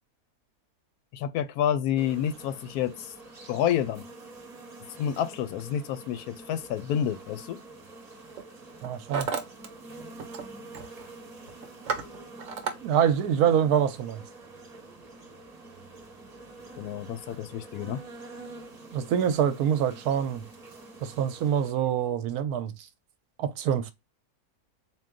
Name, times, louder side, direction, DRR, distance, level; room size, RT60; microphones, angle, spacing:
voice 1, 1.1-3.1 3.5-4.0 5.0-7.6 16.8-18.0, left 9 dB, 80° left, 1.1 m, -29 dB
sound 1, 2.0-21.7, right 2 dB, 30° right, 0.9 m, -47 dB
Hammer, 7.1-7.4 8.1-8.4 8.7-9.7 9.9-10.5 10.7-11.1 11.5-12.8, right 5 dB, 60° right, 1.1 m, -33 dB
voice 2, 8.8-9.3 12.8-14.2 18.9-20.4 21.0-22.7 23.4-23.9, right 9 dB, 80° right, 1.1 m, -25 dB
3.8 x 2.6 x 3.6 m
omnidirectional pair, 1.6 m